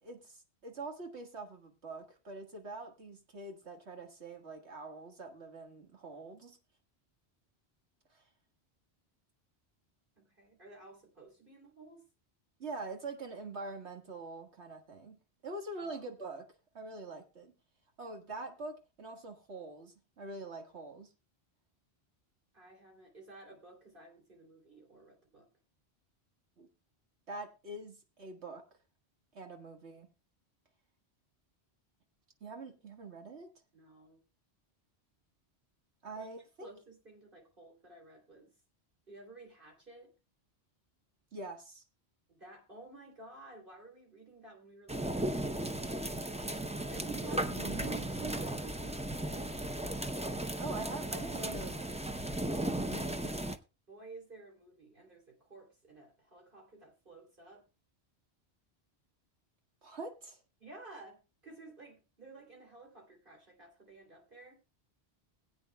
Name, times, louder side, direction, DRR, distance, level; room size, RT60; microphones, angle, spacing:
voice 1, 0.0-6.6 8.1-8.2 12.6-15.2 15.4-16.5 16.7-17.5 18.0-21.1 26.6-26.7 27.3-28.7 29.3-30.1 32.4-33.5 36.0-36.7 41.3-41.8 47.3-48.0 50.6-52.1 52.8-53.3 59.8-60.4, right 3 dB, 85° right, 3 dB, 2.1 m, -44 dB
voice 2, 10.2-12.0 15.7-16.1 22.5-25.5 29.4-29.5 33.7-34.2 36.2-36.3 36.6-38.5 39.1-40.1 42.3-45.8 46.9-49.7 53.9-57.6 60.6-64.6, right 3 dB, 50° right, -1 dB, 3.3 m, -52 dB
sound 1, 44.9-53.6, right 1 dB, 10° right, 0.4 m, -36 dB
21.0 x 8.7 x 2.3 m, 0.29 s
omnidirectional pair, 1.1 m